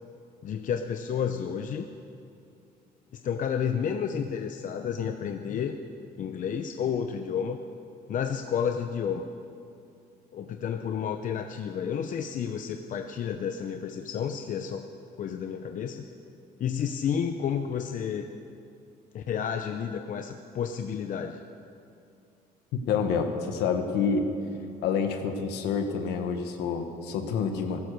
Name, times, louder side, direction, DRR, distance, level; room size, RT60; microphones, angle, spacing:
voice 1, 0.4-1.8 3.1-5.8 6.2-7.6 8.1-9.3 10.3-14.9 15.2-16.0 16.6-18.3 19.1-21.4, left 7 dB, 50° left, 6 dB, 0.8 m, -31 dB
voice 2, 22.9-24.3 24.8-27.8, left 6 dB, 85° left, 6 dB, 1.4 m, -28 dB
15.5 x 12.5 x 6.6 m, 2.5 s
cardioid pair, 110°, 17 cm